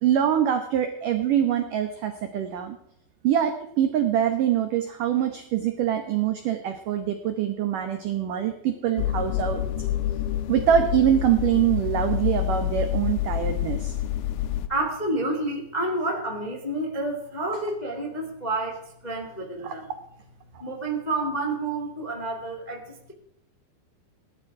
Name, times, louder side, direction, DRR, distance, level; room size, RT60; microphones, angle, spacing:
voice 1, 0.0-2.8 3.2-9.6 10.5-13.9 19.6-19.7, right 10 dB, 85° right, 7 dB, 1.8 m, -24 dB
sound 1, 9.0-14.7, left 12 dB, 85° left, 3.3 m, -27 dB
voice 2, 14.7-19.9 20.6-23.1, right 2 dB, 20° left, 1 dB, 1.0 m, -29 dB
18.0 x 12.0 x 4.8 m, 0.74 s
omnidirectional pair, 5.5 m